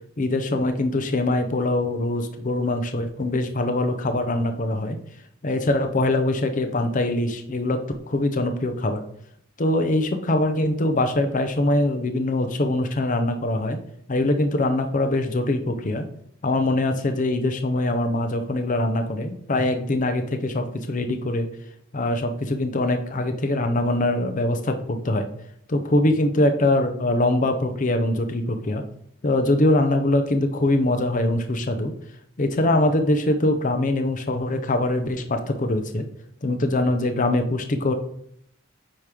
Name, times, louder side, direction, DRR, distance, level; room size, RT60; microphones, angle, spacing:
voice 1, 0.2-5.0 5.4-7.8 8.1-9.0 9.6-13.8 14.1-16.1 16.4-21.5 21.9-25.3 25.7-28.8 29.2-31.9 32.4-36.0 36.4-37.9, left 1 dB, 40° left, 7 dB, 0.6 m, -23 dB
8.5 x 3.0 x 4.9 m, 0.70 s
head